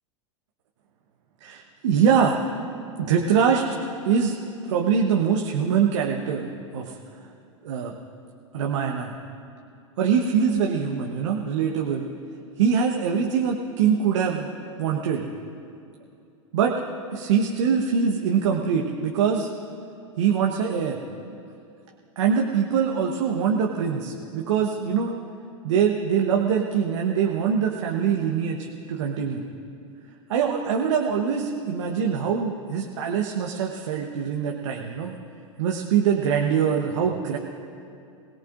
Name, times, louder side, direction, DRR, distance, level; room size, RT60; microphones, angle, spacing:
voice 1, 1.4-2.4 3.0-3.6 4.0-4.3 4.7-7.0 7.6-7.9 8.5-9.1 10.0-12.0 12.6-14.5 14.8-15.3 16.5-16.7 17.1-19.5 20.2-21.0 22.2-25.1 25.6-29.4 30.3-35.1 35.6-37.4, right 7 dB, 65° right, 1 dB, 1.1 m, -23 dB
22.5 x 17.5 x 2.5 m, 2.5 s
hypercardioid pair, 95°, 17 cm